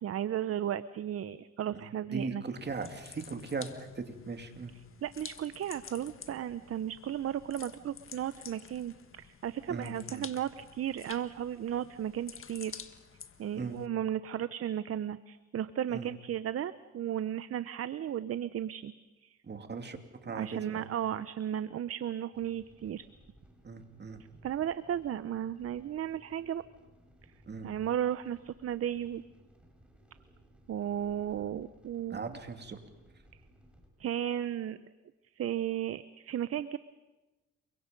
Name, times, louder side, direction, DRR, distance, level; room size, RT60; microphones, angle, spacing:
voice 1, 0.0-2.4 5.0-12.7 13.4-18.9 19.2-19.4 20.3-23.0 24.4-26.6 27.6-29.2 30.7-32.2 34.0-34.8 35.4-36.8, right 10 dB, 50° right, 14 dB, 0.8 m, -34 dB
voice 2, 1.7-4.7 9.7-10.3 13.5-13.8 15.9-16.1 19.4-20.9 23.6-24.2 27.5-27.7 32.1-32.8, right 4 dB, 35° right, 5 dB, 2.8 m, -39 dB
sound 1, 2.6-13.9, left 7 dB, 45° left, 1.6 m, -50 dB
sound 2, 22.3-33.9, equal, 5° right, 5.8 m, -60 dB
28.5 x 24.0 x 5.3 m, 1.1 s
cardioid pair, 90°, 30 cm